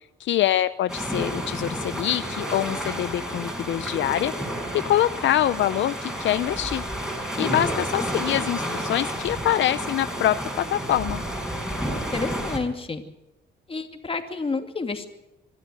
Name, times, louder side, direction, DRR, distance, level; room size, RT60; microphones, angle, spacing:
voice 1, 0.2-4.3 4.7-6.8 7.4-11.2, left 12 dB, 70° left, 13 dB, 0.7 m, -24 dB
sound 1, 0.9-12.6, equal, 5° right, 5.8 m, -30 dB
voice 2, 12.1-13.0 13.7-15.1, left 4 dB, 30° left, 6 dB, 2.6 m, -29 dB
25.5 x 12.5 x 9.3 m, 0.94 s
cardioid pair, 90°, 20 cm